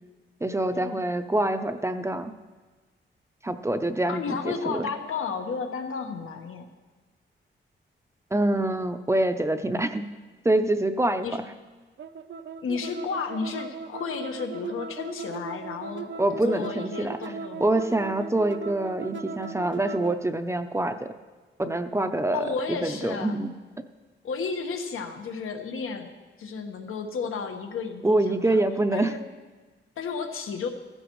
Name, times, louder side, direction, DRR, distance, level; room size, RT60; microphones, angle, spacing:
voice 1, 0.4-2.3 3.4-4.9 8.3-10.0 10.4-11.3 16.2-17.2 17.6-21.1 21.6-23.5 28.0-29.1, right 1 dB, 15° right, 9 dB, 0.5 m, -25 dB
voice 2, 4.1-6.7 11.2-11.4 12.6-16.1 16.4-17.6 22.3-23.3 24.2-26.1 26.4-28.6 28.9-29.2 30.0-30.7, left 5 dB, 90° left, 4 dB, 1.4 m, -32 dB
sound 1, 12.0-20.2, right 6 dB, 65° right, 0.7 m, -38 dB
15.5 x 15.0 x 3.1 m, 1.3 s
wide cardioid pair, 165°, 21 cm